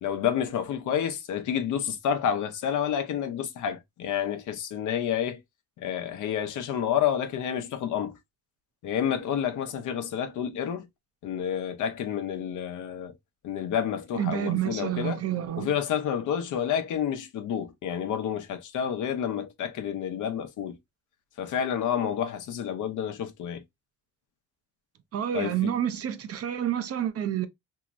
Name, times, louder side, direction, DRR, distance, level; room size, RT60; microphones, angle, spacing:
voice 1, 0.0-5.4 5.8-8.2 8.8-10.9 11.2-13.1 13.4-15.2 15.6-20.8 21.4-23.6 25.3-25.7, left 9 dB, 80° left, 0.8 m, -29 dB
voice 2, 14.1-15.7 25.1-27.5, right 10 dB, 50° right, 0.6 m, -29 dB
3.0 x 2.8 x 2.5 m
cardioid pair, 90°, 30 cm